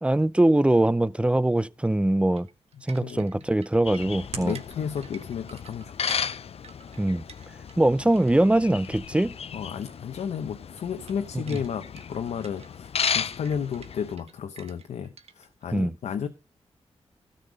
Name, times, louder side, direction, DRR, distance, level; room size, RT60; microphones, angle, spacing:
voice 1, 0.0-2.5 2.9-4.6 7.0-7.2 7.8-9.4 11.5-11.6 15.7-15.9, right 1 dB, 10° right, 0.6 m, -22 dB
sound 1, 2.4-7.9 8.1-9.3 9.7-9.9 10.2-10.4 10.8-15.6, right 6 dB, 65° right, 1.3 m, -50 dB
Hands, 2.8-11.3, right 5 dB, 85° right, 3.5 m, -49 dB
voice 2, 3.0-3.4 4.3-6.4 9.5-16.3, left 7 dB, 85° left, 0.9 m, -33 dB
sound 2, 3.9-14.2, left 7 dB, 65° left, 0.5 m, -35 dB
13.0 x 6.6 x 5.3 m
cardioid pair, 55°, 11 cm